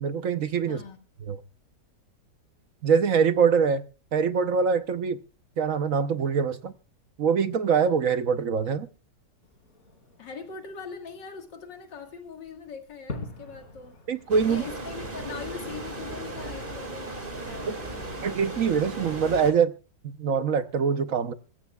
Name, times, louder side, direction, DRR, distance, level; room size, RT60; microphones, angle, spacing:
voice 1, 0.0-0.8 1.3-1.4 2.8-3.8 4.1-5.2 5.6-6.7 7.2-8.9 14.1-14.6 17.6-17.8 18.2-19.7 20.0-21.3, right 6 dB, 55° right, 1.1 m, -24 dB
voice 2, 0.7-1.0 10.2-13.9 14.4-18.2, left 5 dB, 85° left, 2.4 m, -41 dB
Fireworks, 9.4-14.7, left 2 dB, 40° left, 3.3 m, -45 dB
sound 1, 14.3-19.5, right 2 dB, 30° right, 2.2 m, -36 dB
25.0 x 14.5 x 2.3 m
omnidirectional pair, 1.9 m